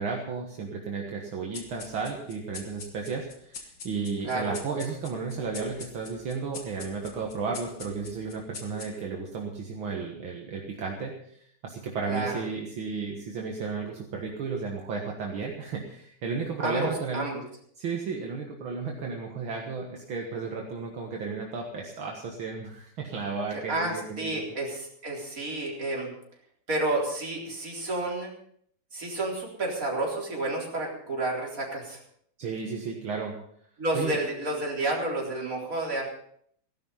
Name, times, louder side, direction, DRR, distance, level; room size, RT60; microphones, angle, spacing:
voice 1, 0.0-17.2 17.8-24.5 32.4-33.4 33.9-34.2, right 5 dB, 65° right, 0 dB, 2.4 m, -33 dB
sound 1, 1.5-9.3, left 4 dB, 55° left, 2.4 m, -45 dB
voice 2, 4.2-4.5 12.1-12.4 16.6-17.4 23.5-26.1 26.7-28.3 28.9-32.0 33.8-36.1, right 2 dB, 40° right, -2 dB, 4.3 m, -30 dB
16.5 x 12.0 x 5.6 m, 0.65 s
omnidirectional pair, 2.4 m